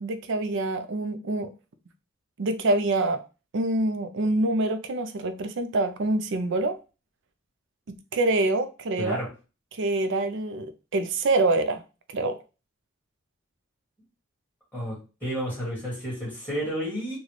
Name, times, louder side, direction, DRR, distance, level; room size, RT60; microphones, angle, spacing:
voice 1, 0.0-1.5 2.4-3.2 3.5-6.8 8.1-9.2 9.7-11.8 12.1-12.4, right 2 dB, 60° right, 10 dB, 0.5 m, -25 dB
voice 2, 9.0-9.3 14.7-17.2, equal, 10° left, -7 dB, 1.8 m, -31 dB
3.9 x 2.2 x 3.1 m, 0.32 s
head